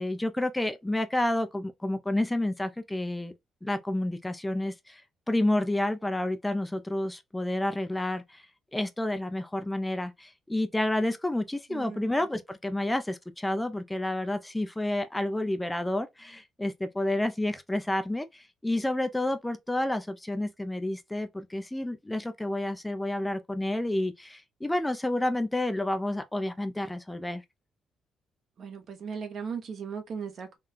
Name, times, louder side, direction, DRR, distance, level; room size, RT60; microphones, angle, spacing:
voice 1, 0.0-3.3 3.6-5.0 5.3-8.4 8.7-27.4, left 1 dB, 10° left, 0.5 m, -30 dB
voice 2, 11.7-12.1 28.6-30.6, right 6 dB, 55° right, 0.8 m, -37 dB
3.8 x 2.2 x 2.5 m
cardioid pair, 90°, 0 cm